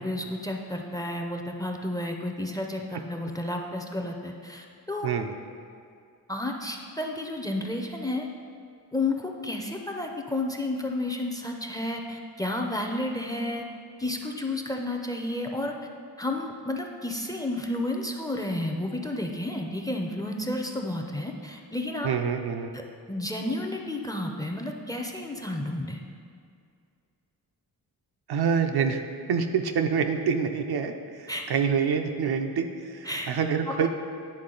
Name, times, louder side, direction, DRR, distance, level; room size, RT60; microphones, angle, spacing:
voice 1, 0.0-5.1 6.3-8.3 8.9-13.7 14.0-15.8 16.2-22.1 22.7-22.8 23.1-26.0 31.3-31.4 33.1-33.3 33.7-33.9, left 1 dB, 10° left, 2 dB, 0.5 m, -31 dB
voice 2, 5.0-5.3 22.0-22.7 28.3-29.0 29.3-33.9, right 6 dB, 65° right, 5 dB, 0.6 m, -26 dB
9.7 x 3.6 x 3.8 m, 2.3 s
cardioid pair, 70°, 41 cm